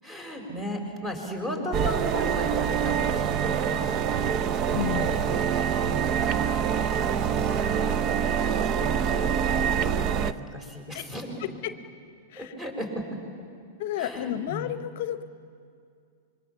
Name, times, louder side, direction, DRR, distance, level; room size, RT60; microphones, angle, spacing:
voice 1, 0.0-4.2 5.0-5.3 5.8-11.3 12.4-13.2 14.0-14.7, equal, 15° right, 3 dB, 4.8 m, -37 dB
sound 1, 1.7-10.3, right 7 dB, 40° right, 0.7 m, -25 dB
voice 2, 4.7-5.4 10.9-11.1 11.6-11.7 12.3-12.5 13.8-15.2, left 11 dB, 60° left, 12 dB, 0.7 m, -32 dB
26.0 x 22.5 x 7.3 m, 2.3 s
hypercardioid pair, 105°, 0 cm